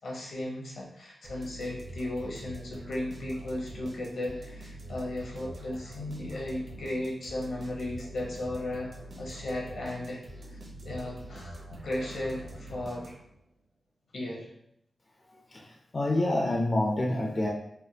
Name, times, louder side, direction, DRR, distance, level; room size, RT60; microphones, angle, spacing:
voice 1, 0.0-8.9 9.2-10.2 10.5-13.1 14.1-14.5, left 1 dB, 70° left, -2 dB, 0.8 m, -35 dB
sound 1, 1.2-13.4, right 1 dB, 65° right, 0.8 m, -45 dB
voice 2, 15.9-17.5, left 1 dB, 35° left, 0 dB, 0.3 m, -27 dB
3.3 x 2.2 x 2.7 m, 0.75 s
wide cardioid pair, 115°, 0 cm